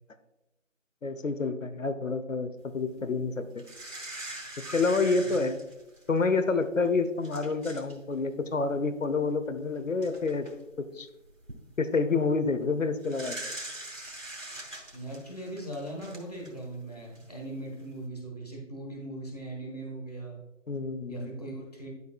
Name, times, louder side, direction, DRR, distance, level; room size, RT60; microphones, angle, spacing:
voice 1, 1.0-3.6 4.7-5.6 6.1-10.5 10.8-11.1 11.8-13.4 20.7-21.4, left 4 dB, 90° left, 11 dB, 0.9 m, -28 dB
sound 1, 3.6-6.2 6.8-6.9 7.2-8.0 8.2-8.4 9.5-9.6 10.0-10.5 11.2-11.6 13.0-16.7 17.1-17.2, right 1 dB, 85° right, 2.6 m, -42 dB
voice 2, 14.9-20.4 21.1-21.9, right 1 dB, 30° left, -2 dB, 1.4 m, -39 dB
12.5 x 4.9 x 2.4 m, 0.99 s
figure-of-eight pair, 180°, 38 cm